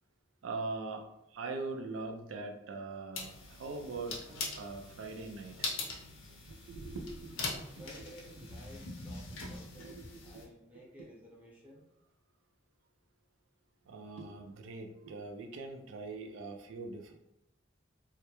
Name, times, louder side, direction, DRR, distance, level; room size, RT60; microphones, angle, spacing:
voice 1, 0.4-5.7 6.4-7.8 8.4-8.5 9.3-9.4 9.8-10.4 10.7-11.1 13.8-17.2, right 3 dB, 90° right, 4 dB, 0.4 m, -42 dB
sound 1, 3.1-10.5, left 3 dB, 85° left, 0.6 m, -42 dB
voice 2, 7.8-10.0 10.2-11.8, equal, 10° right, -5 dB, 0.7 m, -54 dB
2.2 x 2.0 x 2.9 m, 0.89 s
head